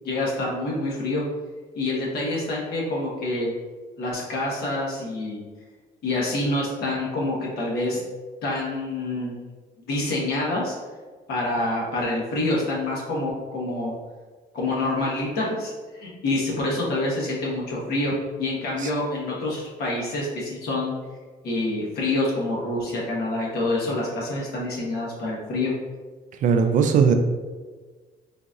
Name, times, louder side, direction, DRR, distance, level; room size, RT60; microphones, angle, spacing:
voice 1, 0.0-1.2 1.7-3.5 4.0-5.4 6.0-8.0 8.4-9.4 9.8-10.8 11.3-13.9 14.5-20.9 21.4-25.7, left 2 dB, 70° left, -4 dB, 1.1 m, -27 dB
voice 2, 26.4-27.1, right 6 dB, 50° right, 6 dB, 0.4 m, -18 dB
3.9 x 2.6 x 2.4 m, 1.4 s
cardioid pair, 110°, 17 cm